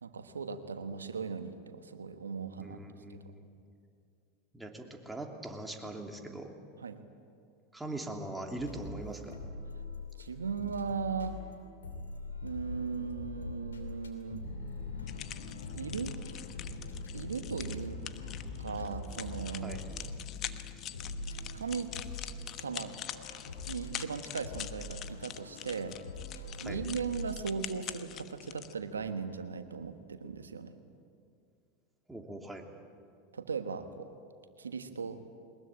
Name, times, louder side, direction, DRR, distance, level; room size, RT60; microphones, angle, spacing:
voice 1, 0.0-2.8 3.1-3.2 6.8-7.0 10.2-11.4 12.4-14.5 15.7-16.1 17.1-18.0 18.6-19.8 21.5-21.9 22.6-23.0 23.7-26.0 26.6-30.8 33.3-34.1 34.6-35.2, right 5 dB, 90° right, 9 dB, 1.3 m, -38 dB
voice 2, 2.6-3.4 4.5-6.5 7.7-9.3 19.6-19.8 26.6-26.8 32.1-32.7, right 1 dB, 10° right, 3 dB, 2.9 m, -41 dB
sound 1, 8.6-10.3 10.6-27.3, left 2 dB, 90° left, 2.8 m, -43 dB
sound 2, 14.4-30.3, left 5 dB, 70° left, 4.5 m, -50 dB
sound 3, 15.1-28.7, left 12 dB, 45° left, 1.1 m, -45 dB
21.5 x 20.5 x 9.0 m, 2.4 s
hypercardioid pair, 90°, 0 cm